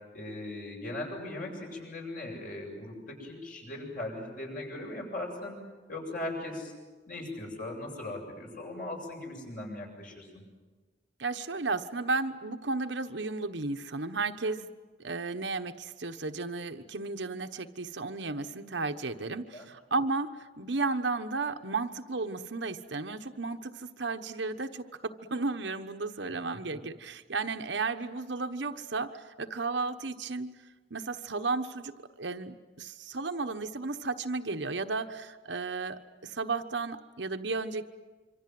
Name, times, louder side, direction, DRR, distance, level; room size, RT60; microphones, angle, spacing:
voice 1, 0.0-6.7 7.1-10.4 19.5-19.7, left 1 dB, 50° left, 1 dB, 7.9 m, -39 dB
voice 2, 11.2-14.7 15.0-30.5 30.9-37.9, right 3 dB, 75° right, 7 dB, 1.2 m, -34 dB
26.5 x 25.0 x 7.8 m, 1.3 s
head